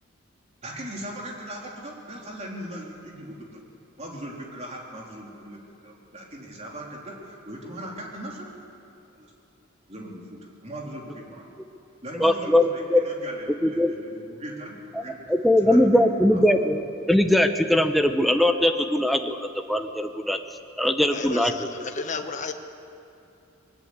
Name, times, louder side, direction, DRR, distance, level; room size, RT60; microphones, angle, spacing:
voice 1, 0.6-3.5 4.0-8.5 9.2-9.3 9.9-11.4 12.0-15.1 15.6-16.4, right 1 dB, 35° right, -1 dB, 3.6 m, -39 dB
voice 2, 12.2-13.0 13.6-13.9 15.3-20.4 20.8-21.9, left 1 dB, ahead, 7 dB, 0.9 m, -21 dB
voice 3, 21.1-22.5, left 4 dB, 35° left, 6 dB, 1.3 m, -33 dB
21.5 x 19.5 x 8.1 m, 2.7 s
head